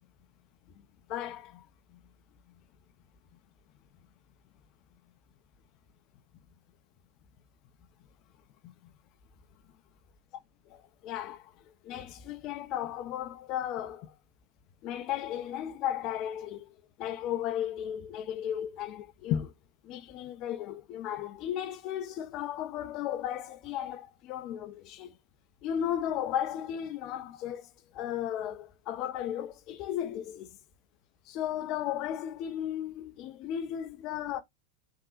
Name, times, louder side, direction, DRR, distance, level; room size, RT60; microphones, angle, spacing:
voice 1, 1.1-2.0 2.5-2.6 6.3-6.4 8.6-8.9 10.7-14.2 14.8-19.5 19.8-25.2 25.6-30.5 31.3-34.4, left 10 dB, 40° left, 0.5 m, -35 dB
3.6 x 2.7 x 2.4 m
figure-of-eight pair, 90°, 0 cm